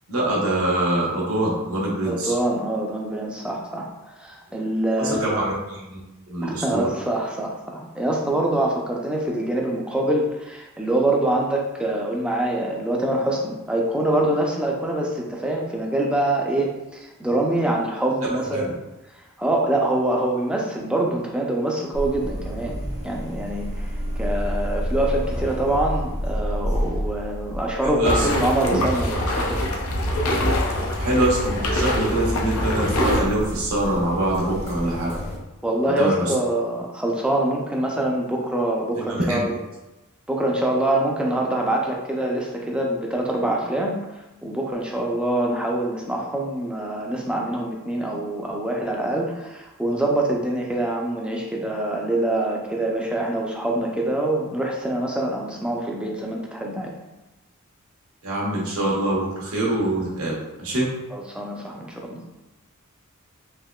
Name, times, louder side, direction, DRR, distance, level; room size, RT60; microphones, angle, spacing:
voice 1, 0.1-2.3 5.0-6.0 6.3-6.8 18.5-18.7 27.9-28.3 30.9-35.1 36.0-36.3 39.1-39.4 58.2-60.3 60.6-60.9, right 1 dB, 75° right, -4 dB, 1.0 m, -24 dB
voice 2, 2.0-3.9 4.2-5.4 6.4-18.7 19.4-22.8 23.0-23.9 24.2-29.6 35.6-39.5 40.3-44.0 44.4-56.9 61.1-62.2, right 1 dB, 5° right, -1 dB, 0.4 m, -25 dB
sound 1, 21.9-35.4, equal, 30° left, 0.7 m, -31 dB
sound 2, 28.0-33.2, left 1 dB, 85° left, 0.6 m, -24 dB
3.5 x 3.0 x 2.3 m, 1.0 s
head